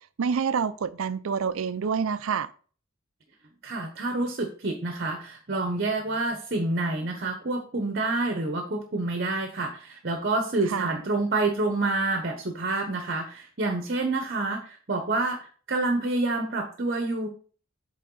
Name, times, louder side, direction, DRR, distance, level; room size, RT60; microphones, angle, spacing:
voice 1, 0.2-2.5 10.7-11.0, right 6 dB, 85° right, 0.5 m, -27 dB
voice 2, 3.6-15.4 15.7-17.3, right 2 dB, 50° right, 1.0 m, -28 dB
8.5 x 3.7 x 3.9 m
head